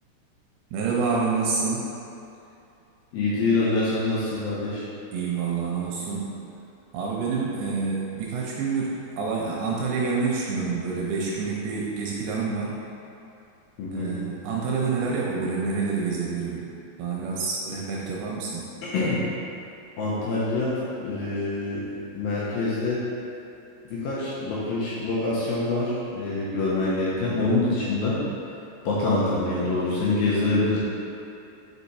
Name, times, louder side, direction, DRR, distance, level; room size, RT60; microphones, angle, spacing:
voice 1, 0.7-1.9 5.1-6.3 6.9-12.8 13.9-16.7 17.0-18.7, right 4 dB, 80° right, -3 dB, 2.3 m, -27 dB
voice 2, 3.1-4.9 13.8-14.1 18.8-19.2 20.0-21.9 22.1-23.0 23.9-28.2 28.8-30.8, left 2 dB, 75° left, -8 dB, 2.3 m, -25 dB
5.6 x 4.8 x 4.1 m, 2.8 s
omnidirectional pair, 5.0 m